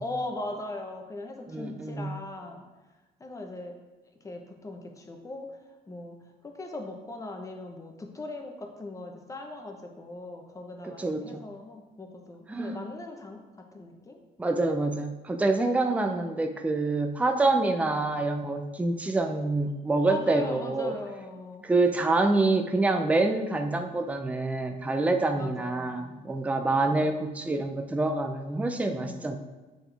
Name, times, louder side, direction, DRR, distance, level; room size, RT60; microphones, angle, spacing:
voice 1, 0.0-2.6 3.2-3.8 4.2-5.6 5.9-6.2 6.4-14.2 17.9-18.1 20.0-21.7 25.3-26.2 26.9-27.1 29.0-29.4, left 2 dB, 20° left, 3 dB, 0.9 m, -39 dB
voice 2, 1.5-2.1 10.8-11.4 12.5-12.8 14.4-20.9 21.6-29.4, right 2 dB, 10° right, 4 dB, 0.5 m, -26 dB
7.9 x 4.2 x 3.4 m, 1.2 s
cardioid pair, 110°, 17 cm